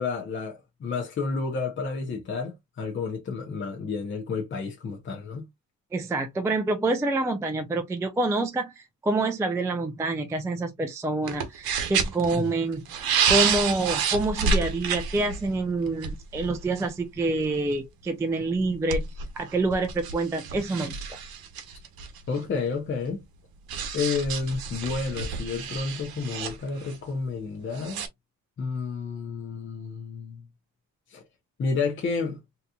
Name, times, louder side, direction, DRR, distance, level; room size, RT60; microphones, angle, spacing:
voice 1, 0.0-5.5 12.4-12.5 22.3-23.2 23.9-28.0 28.6-30.5 31.1-31.2 31.6-32.4, left 4 dB, 35° left, 0.6 m, -30 dB
voice 2, 5.9-21.2, right 2 dB, 10° right, 0.3 m, -27 dB
sound 1, 11.3-12.4 12.7-17.0 17.4-17.6 18.5-22.4 23.7-27.0 27.7-28.1, right 6 dB, 80° right, 0.9 m, -29 dB
3.8 x 2.8 x 2.2 m
cardioid pair, 175°, 36 cm